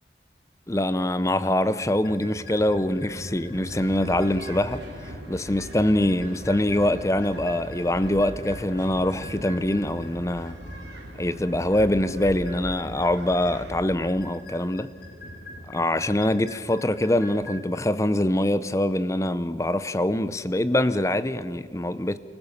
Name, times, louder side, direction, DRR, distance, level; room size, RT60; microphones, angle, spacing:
voice 1, 0.7-10.6 11.2-14.9 15.7-22.2, left 1 dB, 15° left, 0.6 m, -24 dB
sound 1, 1.8-17.6, equal, 55° left, 2.8 m, -43 dB
sound 2, 3.5-13.9, right 1 dB, 85° right, 2.6 m, -41 dB
30.0 x 15.5 x 7.2 m
head